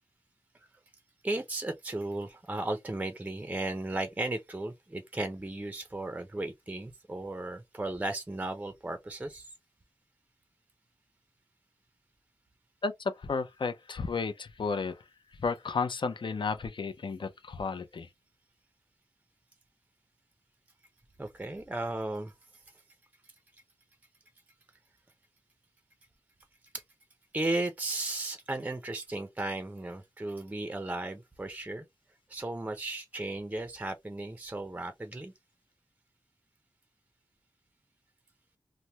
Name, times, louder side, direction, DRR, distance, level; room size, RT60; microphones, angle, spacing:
voice 1, 1.2-9.5 21.2-22.3 26.7-26.8 27.3-31.9 32.3-35.3, right 2 dB, 15° right, 0.5 m, -35 dB
voice 2, 13.2-14.9 15.4-18.1, left 4 dB, 60° left, 0.6 m, -32 dB
3.2 x 2.1 x 2.8 m
wide cardioid pair, 85°, 9 cm